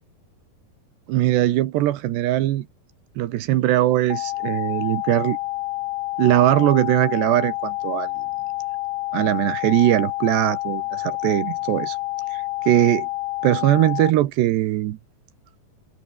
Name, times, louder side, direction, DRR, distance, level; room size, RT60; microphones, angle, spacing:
voice 1, 1.1-2.7 3.2-5.4 6.2-8.1 9.1-12.0 12.3-13.1 13.4-15.0, right 14 dB, 85° right, 3.4 m, -20 dB
sound 1, 4.1-14.1, left 19 dB, 90° left, 2.0 m, -28 dB
omnidirectional pair, 4.9 m